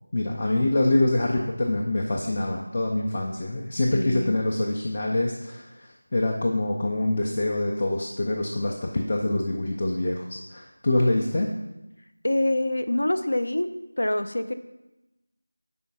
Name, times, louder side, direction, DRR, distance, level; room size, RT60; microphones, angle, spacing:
voice 1, 0.1-11.5, left 2 dB, 25° left, -1 dB, 0.4 m, -25 dB
voice 2, 3.9-4.4 12.2-13.7 14.0-14.5, left 1 dB, 75° left, 10 dB, 0.5 m, -25 dB
5.1 x 4.7 x 5.3 m, 0.97 s
figure-of-eight pair, 175°, 0 cm